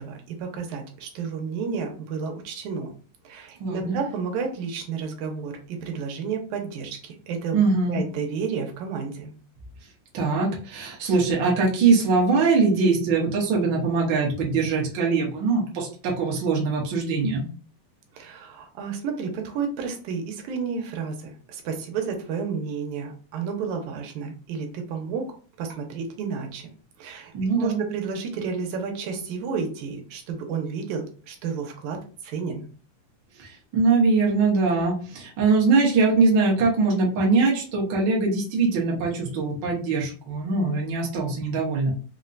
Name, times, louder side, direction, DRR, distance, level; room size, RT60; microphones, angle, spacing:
voice 1, 0.0-2.9 3.2-7.6 7.9-9.3 18.1-25.2 25.6-26.7 27.0-32.0 32.2-32.7, right 5 dB, 85° right, 3 dB, 2.2 m, -31 dB
voice 2, 3.6-4.0 7.5-8.0 10.1-17.4 27.3-27.8 33.4-41.9, right 4 dB, 60° right, -3 dB, 1.2 m, -22 dB
5.1 x 2.1 x 2.5 m, 0.39 s
omnidirectional pair, 3.4 m